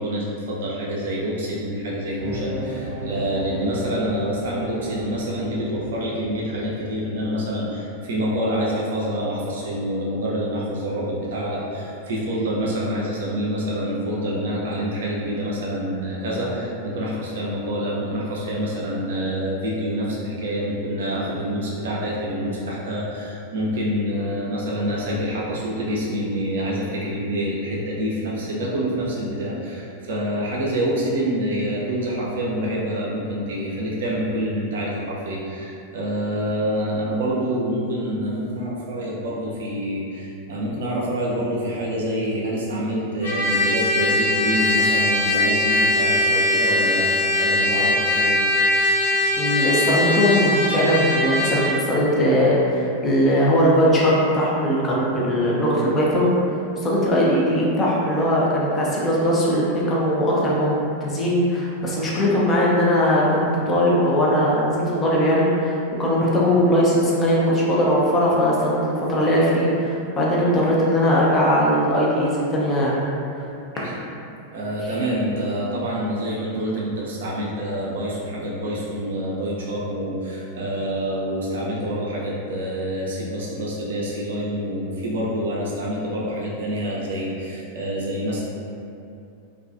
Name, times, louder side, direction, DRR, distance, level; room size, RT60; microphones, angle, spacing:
voice 1, 0.0-48.4 73.7-73.9 74.5-88.4, equal, 60° right, -5 dB, 0.5 m, -27 dB
sound 1, 2.2-7.7, right 1 dB, 20° right, 0.8 m, -35 dB
Trumpet, 43.2-51.8, left 1 dB, 65° left, 0.5 m, -21 dB
voice 2, 49.4-56.3 56.8-73.0, equal, 20° left, -5 dB, 0.5 m, -20 dB
2.3 x 2.3 x 2.4 m, 2.6 s
figure-of-eight pair, 90°, 0 cm